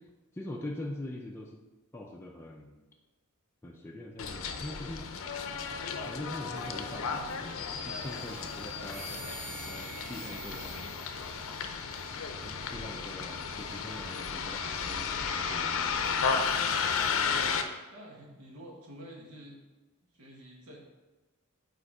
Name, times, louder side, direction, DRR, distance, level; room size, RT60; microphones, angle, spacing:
voice 1, 0.3-1.6 1.9-2.8 3.6-5.0 6.0-10.9 12.1-16.2 17.2-17.6, left 1 dB, 10° left, -2 dB, 0.4 m, -43 dB
Bus, 4.2-17.6, left 5 dB, 65° left, 0.6 m, -33 dB
sound 1, 6.5-7.5 8.0-11.6, right 5 dB, 30° right, 0.7 m, -48 dB
voice 2, 17.9-19.5 20.1-20.8, equal, 80° right, -2 dB, 1.2 m, -48 dB
5.2 x 4.4 x 4.7 m, 1.2 s
head